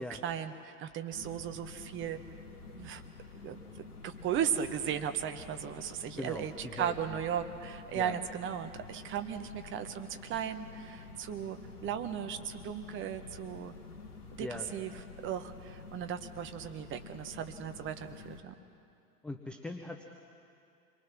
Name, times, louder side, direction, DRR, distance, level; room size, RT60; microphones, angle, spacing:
voice 1, 0.0-2.2 2.7-3.0 3.4-13.7 14.3-14.9 15.2-18.5, right 9 dB, 25° right, 8 dB, 1.2 m, -36 dB
sound 1, 1.1-18.4, left 4 dB, 65° left, 2.2 m, -49 dB
voice 2, 6.2-7.2 7.9-8.1 14.4-14.7 19.2-20.1, left 2 dB, ahead, 4 dB, 0.5 m, -41 dB
27.5 x 23.0 x 6.2 m, 2.5 s
figure-of-eight pair, 100°, 48 cm